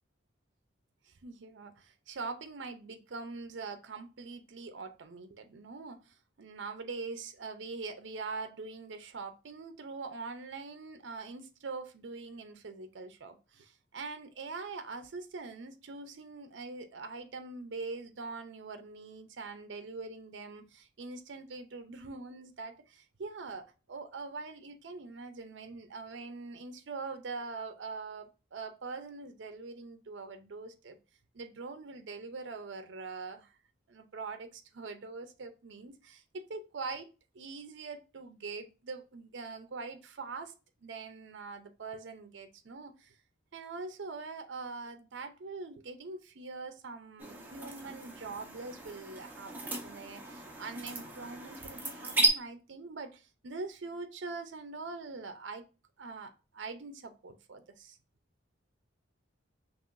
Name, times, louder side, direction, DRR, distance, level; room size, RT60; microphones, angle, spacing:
voice 1, 1.0-31.0 31.3-33.5 33.9-37.1 37.3-40.5 40.8-43.2 43.5-55.6 56.0-58.0, right 4 dB, 70° right, 0.6 m, -43 dB
sound 1, 47.2-52.3, right 2 dB, 10° right, 0.8 m, -35 dB
5.5 x 3.0 x 2.5 m
head